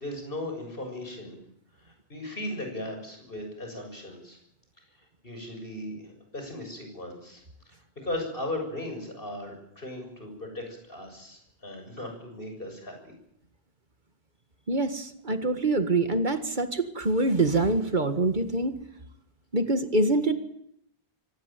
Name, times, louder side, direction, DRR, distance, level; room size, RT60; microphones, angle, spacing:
voice 1, 0.0-1.4 1.8-4.4 5.2-7.4 8.0-12.9, left 1 dB, 60° left, 4 dB, 7.5 m, -37 dB
voice 2, 14.7-18.8 19.5-20.3, right 2 dB, 50° right, 9 dB, 1.9 m, -25 dB
24.0 x 17.5 x 9.2 m, 0.75 s
omnidirectional pair, 1.1 m